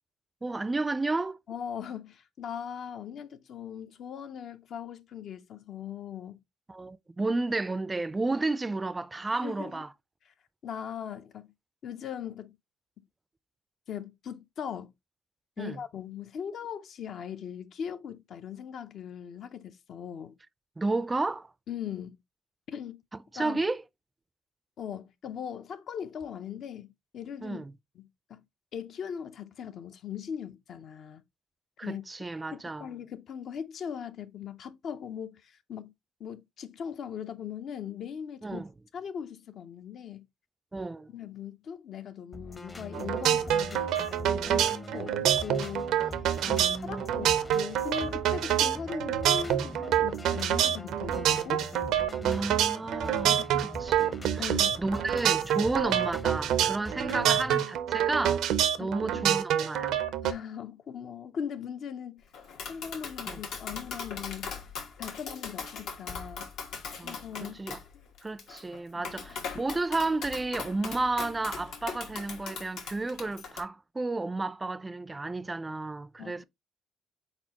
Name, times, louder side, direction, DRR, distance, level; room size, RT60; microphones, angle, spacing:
voice 1, 0.4-1.4 6.7-9.9 15.6-15.8 20.8-21.5 23.3-23.8 27.4-27.7 31.8-32.9 38.4-38.7 40.7-41.1 46.4-47.1 52.2-53.9 54.3-58.4 58.8-60.0 63.3-63.4 67.0-67.8 68.2-76.4, right 3 dB, 20° right, 0.3 m, -32 dB
voice 2, 1.5-6.4 9.4-9.8 10.3-10.4 10.6-11.5 11.8-12.6 13.0-13.1 13.9-14.9 15.6-20.3 21.7-22.2 22.7-23.0 23.3-23.6 24.8-27.6 27.9-28.4 28.7-31.2 31.8-32.0 32.5-35.9 36.2-38.6 38.9-40.2 41.1-43.9 44.2-51.6 53.2-53.7 54.4-54.8 58.8-59.4 60.2-62.3 62.7-64.5 65.0-66.5 67.0-67.6 68.9-69.1 76.2-76.4, left 8 dB, 60° left, 0.6 m, -40 dB
sound 1, 42.3-57.6, left 2 dB, 25° left, 0.7 m, -43 dB
sound 2, 42.9-60.3, right 10 dB, 80° right, 0.5 m, -27 dB
Tap, 62.3-73.6, left 5 dB, 85° left, 1.2 m, -40 dB
4.2 x 4.2 x 2.8 m
cardioid pair, 100°, 0 cm